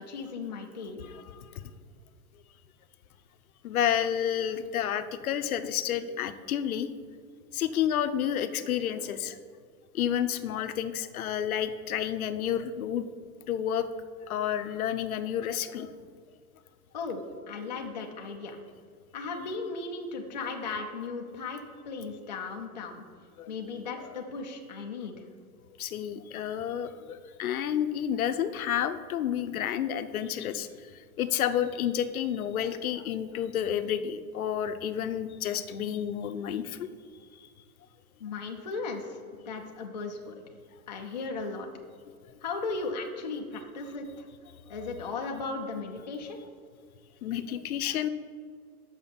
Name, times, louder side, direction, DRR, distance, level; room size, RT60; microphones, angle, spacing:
voice 1, 0.0-1.0 16.9-17.2 17.5-18.6 19.1-23.0 23.5-25.1 38.2-39.2 39.5-40.4 40.9-41.7 42.4-44.3 44.7-46.4, left 4 dB, 30° left, 2 dB, 0.4 m, -36 dB
voice 2, 1.0-1.6 3.6-6.9 7.5-9.4 9.9-13.1 13.5-13.9 14.3-15.9 23.4-23.8 25.8-36.9 37.4-37.5 42.1-42.2 47.2-48.1, left 9 dB, 70° left, 11 dB, 0.7 m, -30 dB
6.2 x 5.8 x 6.9 m, 2.1 s
hypercardioid pair, 175°, 45 cm